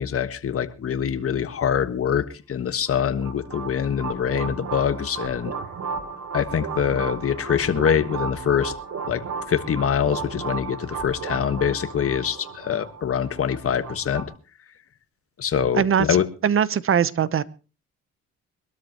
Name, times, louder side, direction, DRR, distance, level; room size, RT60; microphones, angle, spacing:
voice 1, 0.0-5.5 6.3-8.7 9.1-9.2 9.5-14.2 15.4-16.3, left 8 dB, 50° left, 11 dB, 1.5 m, -24 dB
sound 1, 2.9-14.2, right 5 dB, 60° right, 3.1 m, -34 dB
voice 2, 15.7-16.1 16.4-17.4, right 8 dB, 45° right, 18 dB, 1.0 m, -20 dB
23.0 x 13.0 x 3.0 m, 0.33 s
cardioid pair, 90°, 30 cm